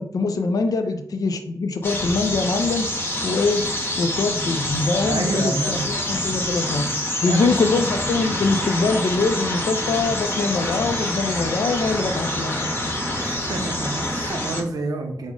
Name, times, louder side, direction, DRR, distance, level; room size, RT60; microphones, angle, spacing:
voice 1, 0.0-3.0 3.2-3.7 4.0-12.7, left 3 dB, 70° left, 7 dB, 0.4 m, -23 dB
sound 1, 1.8-14.6, left 1 dB, 35° left, 0.7 m, -26 dB
voice 2, 5.1-5.8 7.2-7.7 13.2-15.3, right 2 dB, 75° right, 3 dB, 0.7 m, -28 dB
4.8 x 2.0 x 3.6 m, 0.76 s
wide cardioid pair, 135°, 7 cm